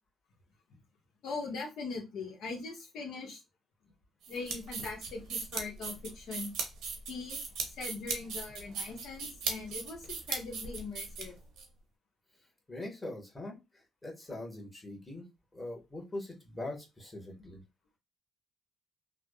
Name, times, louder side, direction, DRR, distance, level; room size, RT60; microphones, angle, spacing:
voice 1, 1.2-3.4 4.3-6.5 7.1-7.4 7.6-11.3, left 4 dB, 80° left, 1 dB, 1.0 m, -41 dB
sound 1, 4.2-11.6, right 5 dB, 85° right, 0.8 m, -38 dB
voice 2, 12.7-13.6 14.0-15.2 15.5-17.6, left 2 dB, 20° left, -1 dB, 1.2 m, -42 dB
3.3 x 2.1 x 2.2 m, 0.25 s
cardioid pair, 90°, 0 cm